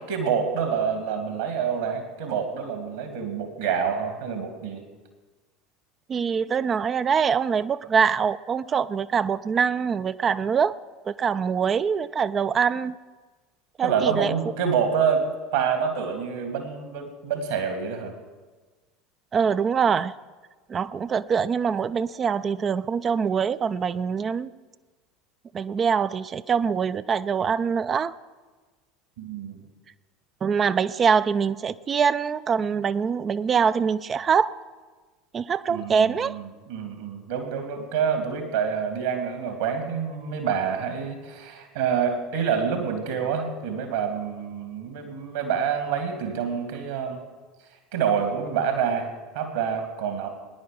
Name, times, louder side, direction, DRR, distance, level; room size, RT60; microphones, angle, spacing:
voice 1, 0.1-4.8 13.8-15.2 15.5-18.1 29.2-29.6 35.7-47.2 47.9-50.3, right 7 dB, 65° right, 5 dB, 2.4 m, -27 dB
voice 2, 6.1-10.7 11.1-12.9 13.8-14.3 19.3-20.1 20.7-24.5 25.5-28.1 30.4-34.5 35.3-36.4, right 6 dB, 30° right, 13 dB, 0.4 m, -24 dB
21.0 x 10.0 x 5.2 m, 1.3 s
figure-of-eight pair, 75°, 0 cm